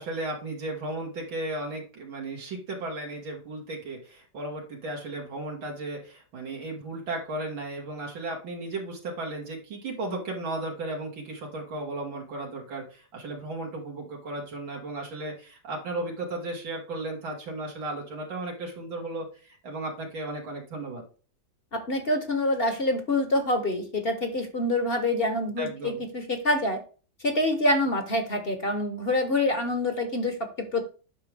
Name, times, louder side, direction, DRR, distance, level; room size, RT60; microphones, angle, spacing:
voice 1, 0.0-21.0 25.6-26.0, right 2 dB, 85° right, -2 dB, 2.5 m, -35 dB
voice 2, 21.7-26.8 27.2-30.8, left 1 dB, 35° left, 6 dB, 1.1 m, -26 dB
9.2 x 6.0 x 3.4 m, 0.37 s
omnidirectional pair, 2.1 m